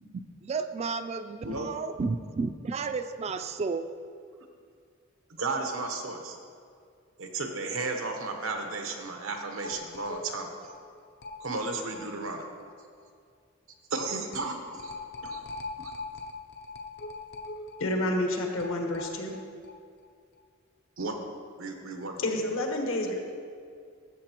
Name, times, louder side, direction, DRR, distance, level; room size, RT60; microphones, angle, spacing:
voice 1, 0.4-3.8, right 4 dB, 30° right, 10 dB, 0.3 m, -32 dB
voice 2, 5.3-6.4 7.2-10.7 11.4-12.5 13.9-14.9 15.2-15.4 15.8-15.9 21.0-21.2 21.6-22.1, right 3 dB, 85° right, 3 dB, 1.0 m, -34 dB
sound 1, 9.6-12.4 12.6-12.7 13.0-13.1 14.0-19.7 20.0-20.1 20.4-20.5, left 3 dB, 55° left, 0.5 m, -41 dB
voice 3, 17.8-19.4 22.2-23.2, left 1 dB, 70° left, 2 dB, 1.2 m, -29 dB
13.5 x 6.9 x 3.0 m, 2.2 s
head